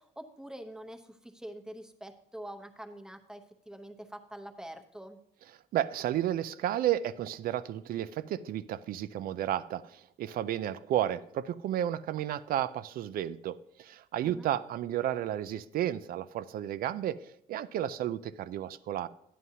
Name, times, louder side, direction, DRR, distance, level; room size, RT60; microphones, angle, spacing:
voice 1, 0.0-5.2 14.2-14.5, right 1 dB, 5° right, 5 dB, 0.9 m, -45 dB
voice 2, 5.7-17.2 17.5-19.1, right 11 dB, 60° right, 16 dB, 0.4 m, -32 dB
11.0 x 9.2 x 2.8 m, 0.74 s
cardioid pair, 110°, 17 cm